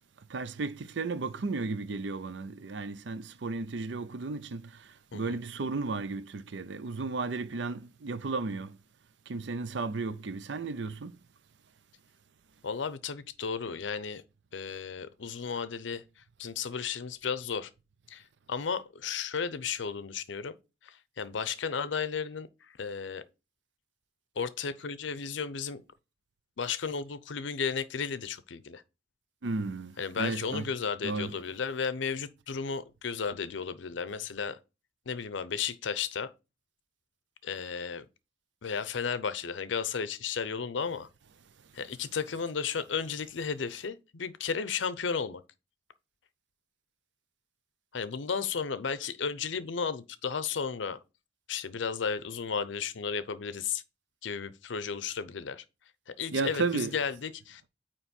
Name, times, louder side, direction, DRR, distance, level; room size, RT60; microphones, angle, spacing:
voice 1, 0.3-4.6 5.1-8.7 9.3-11.1 29.4-30.7 31.0-31.3 56.3-57.0, right 3 dB, 70° right, 0.5 m, -34 dB
voice 2, 12.6-14.2 14.5-16.0 16.4-17.7 18.1-20.6 20.8-22.5 22.8-23.2 24.4-25.8 26.6-28.8 30.0-34.6 35.1-36.3 37.4-38.0 38.6-41.1 41.7-45.4 47.9-51.0 51.5-53.8 54.2-55.6 56.2-57.7, left 6 dB, 75° left, 0.6 m, -34 dB
9.0 x 3.0 x 4.2 m
head